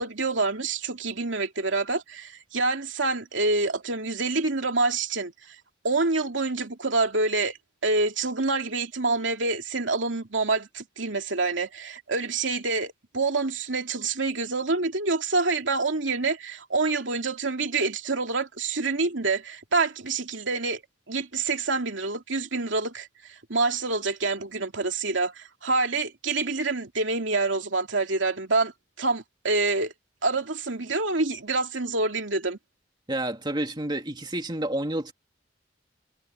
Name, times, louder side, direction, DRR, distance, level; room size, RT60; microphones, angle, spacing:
voice 1, 0.0-5.6 5.8-7.6 7.8-20.8 21.1-28.7 29.0-29.9 30.2-32.6, right 3 dB, 80° right, 2.6 m, -27 dB
voice 2, 33.1-35.1, right 1 dB, 25° right, 2.6 m, -29 dB
head